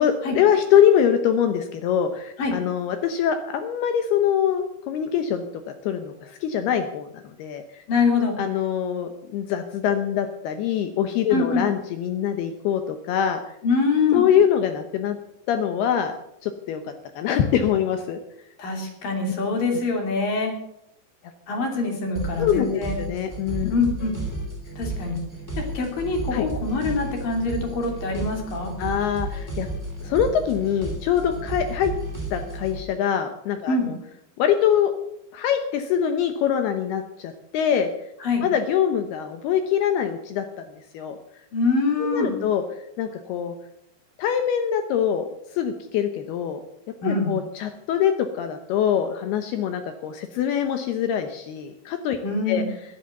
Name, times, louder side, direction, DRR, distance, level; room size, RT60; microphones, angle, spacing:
voice 1, 0.0-5.4 5.8-7.6 8.4-13.4 14.1-15.2 15.5-16.1 16.4-16.8 17.2-18.2 22.4-23.7 26.3-26.5 28.8-29.7 30.0-31.9 32.3-34.0 34.4-34.9 35.3-37.9 38.4-40.6 40.9-41.2 42.0-42.6 43.0-43.5 44.2-45.3 45.5-46.6 47.0-52.2 52.5-52.6, left 9 dB, 75° left, 7 dB, 2.7 m, -23 dB
voice 2, 7.9-8.4 11.3-11.6 13.6-14.3 18.6-20.5 21.5-23.0 23.7-24.1 24.8-25.2 25.6-28.7 33.7-33.9 38.2-38.4 41.5-42.4 47.0-47.3 52.2-52.7, left 3 dB, 55° left, 2 dB, 4.2 m, -24 dB
sound 1, 22.1-32.8, right 2 dB, 5° left, 2.4 m, -33 dB
13.0 x 11.0 x 7.9 m, 0.79 s
omnidirectional pair, 5.1 m